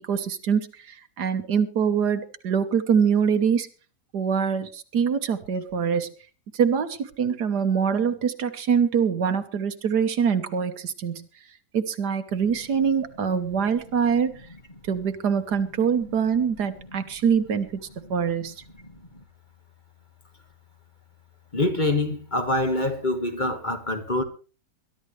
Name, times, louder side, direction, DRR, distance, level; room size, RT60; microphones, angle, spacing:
voice 1, 0.1-3.7 4.1-6.1 6.5-11.3 11.7-14.4 14.9-18.5, right 7 dB, 70° right, 1.7 m, -24 dB
voice 2, 21.5-24.2, left 2 dB, 30° left, 1.7 m, -25 dB
22.0 x 12.5 x 3.3 m
omnidirectional pair, 1.8 m